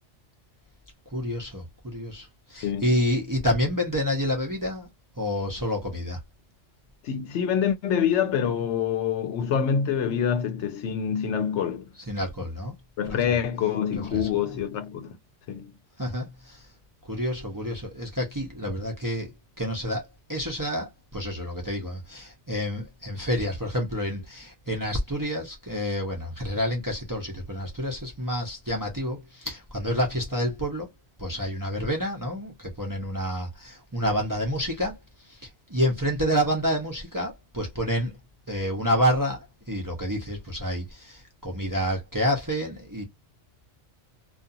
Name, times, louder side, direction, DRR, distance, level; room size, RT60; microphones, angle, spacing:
voice 1, 1.1-4.9 5.2-6.2 12.1-12.7 13.1-13.2 14.1-14.6 16.0-16.7 17.0-19.3 19.6-30.9 31.2-35.0 35.3-38.1 38.5-43.0, equal, 20° right, 0.6 m, -28 dB
voice 2, 2.6-2.9 7.0-11.9 13.0-15.2 15.5-15.7, left 8 dB, 75° left, 0.8 m, -26 dB
2.5 x 2.4 x 2.5 m
omnidirectional pair, 1.2 m